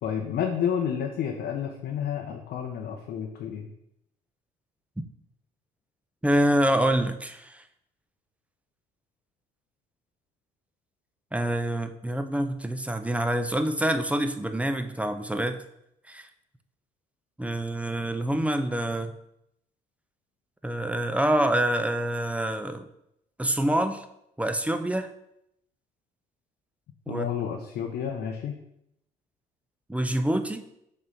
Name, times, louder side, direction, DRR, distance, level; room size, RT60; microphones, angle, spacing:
voice 1, 0.0-3.7 27.1-28.6, left 8 dB, 65° left, 2 dB, 0.8 m, -30 dB
voice 2, 6.2-7.6 11.3-15.6 16.1-16.3 17.4-19.1 20.6-22.9 23.4-24.1 24.4-25.1 27.1-27.3 29.9-30.7, right 1 dB, 5° right, 8 dB, 0.6 m, -26 dB
5.2 x 3.5 x 5.3 m, 0.78 s
hypercardioid pair, 60°, 18 cm